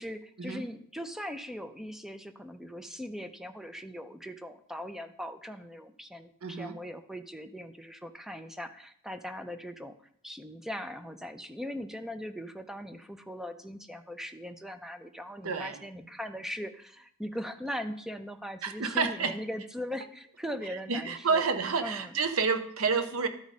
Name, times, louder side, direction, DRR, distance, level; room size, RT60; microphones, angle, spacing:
voice 1, 0.0-9.9 10.2-21.5 21.8-22.1, equal, ahead, 9 dB, 0.4 m, -40 dB
voice 2, 6.4-6.8 15.4-15.8 18.6-19.3 20.7-23.3, right 5 dB, 65° right, 9 dB, 0.7 m, -29 dB
12.5 x 4.8 x 4.1 m, 0.65 s
head